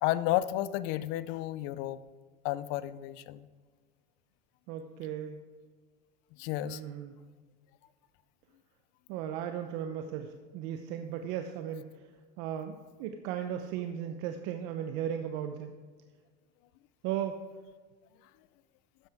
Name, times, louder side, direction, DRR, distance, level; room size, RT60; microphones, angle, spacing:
voice 1, 0.0-2.0 2.4-3.4 6.4-6.8, left 14 dB, 65° left, 16 dB, 0.6 m, -31 dB
voice 2, 4.7-5.4 6.6-7.2 9.1-12.0 12.4-15.7 17.0-17.4, right 9 dB, 65° right, 7 dB, 0.8 m, -36 dB
12.5 x 9.4 x 3.5 m, 1.5 s
supercardioid pair, 120°, 21 cm